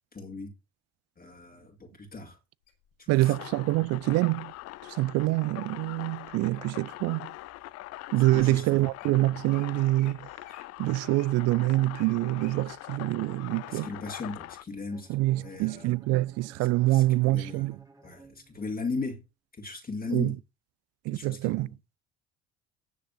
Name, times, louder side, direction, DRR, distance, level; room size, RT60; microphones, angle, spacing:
voice 1, 0.1-0.5 1.2-2.4 3.0-3.4 8.2-8.9 13.7-15.9 16.9-17.7 18.0-19.2 19.5-20.4 21.1-21.7, left 3 dB, 25° left, 2.1 m, -37 dB
Wild animals, 2.7-3.4 4.1-4.4 4.9-5.3 5.9-6.8 7.4-7.5 8.1-8.2 8.3-8.5 8.8-9.1 9.5-9.6 10.0-10.1 10.4-12.6 13.1-13.2, left 6 dB, 80° left, 4.0 m, -57 dB
voice 2, 3.1-4.5 4.9-7.3 8.1-10.3 10.8-13.9 15.1-17.8 20.1-20.3 21.1-21.7, right 18 dB, 50° right, 0.4 m, -26 dB
sound 1, 3.2-14.6, left 17 dB, 45° left, 0.5 m, -43 dB
Bowed string instrument, 14.9-19.0, right 3 dB, 10° right, 1.7 m, -56 dB
17.5 x 6.5 x 2.7 m
figure-of-eight pair, 55°, 34 cm